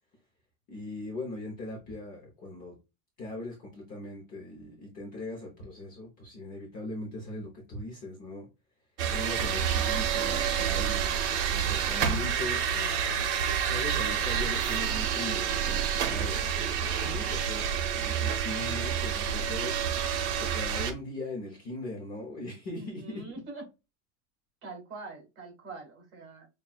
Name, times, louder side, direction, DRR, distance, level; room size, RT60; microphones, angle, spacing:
voice 1, 0.7-2.8 3.2-8.5 9.1-13.1 13.7-23.3, left 2 dB, 20° left, -1 dB, 0.6 m, -40 dB
sound 1, 9.0-20.9, right 8 dB, 55° right, 0.8 m, -28 dB
voice 2, 22.7-23.6 24.6-26.5, right 2 dB, 35° right, 1 dB, 2.2 m, -44 dB
5.8 x 2.3 x 2.3 m, 0.25 s
supercardioid pair, 175°, 41 cm